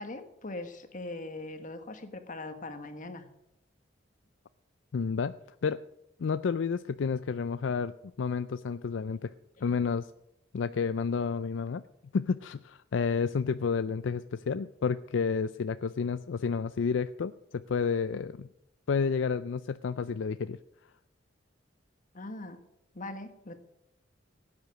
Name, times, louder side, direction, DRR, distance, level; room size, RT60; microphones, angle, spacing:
voice 1, 0.0-3.3 9.7-9.8 22.1-22.6 22.9-23.6, left 2 dB, 45° left, 8 dB, 1.5 m, -41 dB
voice 2, 4.9-5.4 5.6-5.8 6.2-7.9 8.2-9.3 9.6-10.1 10.5-11.8 12.1-18.5 18.9-20.6, left 5 dB, 70° left, 13 dB, 0.4 m, -30 dB
16.5 x 9.6 x 6.3 m, 0.83 s
head